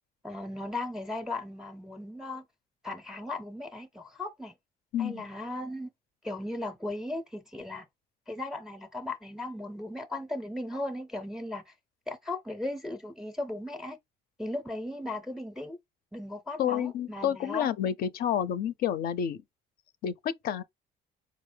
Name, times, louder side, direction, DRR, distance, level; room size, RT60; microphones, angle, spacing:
voice 1, 0.2-2.4 2.8-4.6 5.0-5.9 6.2-7.9 8.3-11.7 12.1-14.0 14.4-15.8 16.1-17.7, left 2 dB, 5° right, 0.5 m, -37 dB
voice 2, 4.9-5.2 16.6-19.4 20.0-20.6, left 9 dB, 65° left, 0.5 m, -29 dB
4.7 x 2.0 x 3.3 m
cardioid pair, 110°, 17 cm